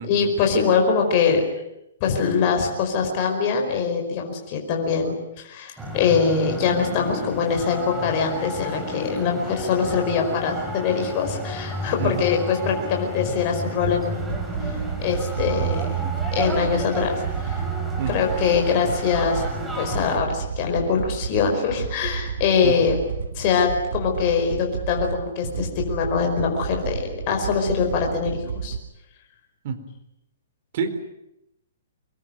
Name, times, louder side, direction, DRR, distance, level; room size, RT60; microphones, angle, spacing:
voice 1, 0.0-1.4 2.0-14.3 14.6-15.9 16.3-17.1 17.4-17.6 18.1-19.5 19.7-23.0 23.3-28.8, left 6 dB, 30° left, 2 dB, 4.9 m, -23 dB
sound 1, 5.8-20.2, right 1 dB, 5° right, 3.6 m, -31 dB
sound 2, 13.8-28.8, right 6 dB, 90° right, 2.5 m, -31 dB
voice 2, 18.0-18.3 22.6-22.7 29.6-29.8 30.7-31.0, right 6 dB, 40° right, 6 dB, 4.1 m, -28 dB
25.5 x 21.0 x 9.6 m, 0.83 s
hypercardioid pair, 170°, 0 cm